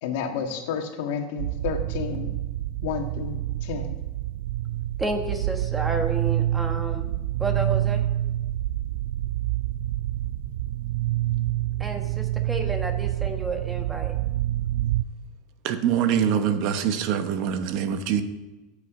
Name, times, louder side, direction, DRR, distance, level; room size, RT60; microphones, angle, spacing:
voice 1, 0.0-2.3 2.8-4.0, left 6 dB, 70° left, 4 dB, 1.7 m, -31 dB
sound 1, 1.4-15.0, right 14 dB, 80° right, 0.4 m, -27 dB
voice 2, 5.0-7.1 7.4-8.0 11.8-14.1, right 2 dB, 10° right, 4 dB, 1.4 m, -31 dB
voice 3, 15.6-18.2, right 8 dB, 50° right, 9 dB, 1.0 m, -24 dB
15.5 x 8.3 x 3.8 m, 1.1 s
supercardioid pair, 155°, 0 cm